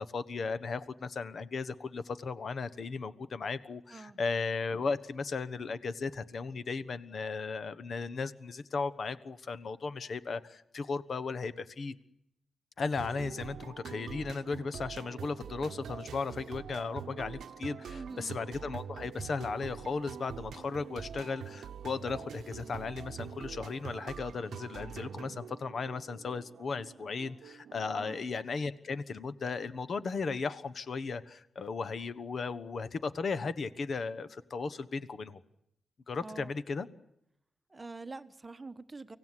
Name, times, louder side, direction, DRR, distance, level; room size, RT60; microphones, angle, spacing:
voice 1, 0.0-11.9 12.8-35.4 36.1-36.9, left 4 dB, 50° left, 15 dB, 1.2 m, -36 dB
voice 2, 3.9-4.2 17.9-18.3 28.0-28.3 36.2-36.5 37.7-39.2, right 3 dB, 20° right, 11 dB, 1.1 m, -45 dB
sound 1, 13.0-28.3, right 8 dB, 80° right, 0.9 m, -45 dB
25.0 x 17.0 x 9.8 m, 0.80 s
wide cardioid pair, 135°, 0 cm